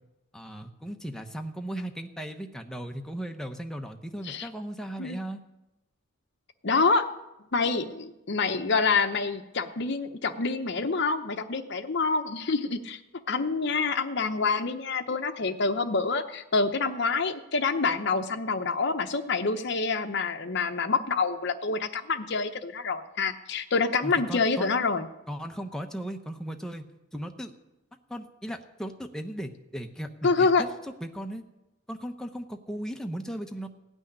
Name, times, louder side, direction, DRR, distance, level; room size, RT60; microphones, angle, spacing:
voice 1, 0.3-5.4 24.0-24.7 25.3-26.8 27.1-27.5 28.1-30.7 31.0-31.4 31.9-33.7, right 1 dB, 5° left, 4 dB, 0.8 m, -37 dB
voice 2, 6.6-7.1 7.5-13.0 13.3-25.1 30.2-30.6, left 4 dB, 50° left, 6 dB, 0.7 m, -27 dB
16.5 x 6.3 x 9.9 m, 0.97 s
head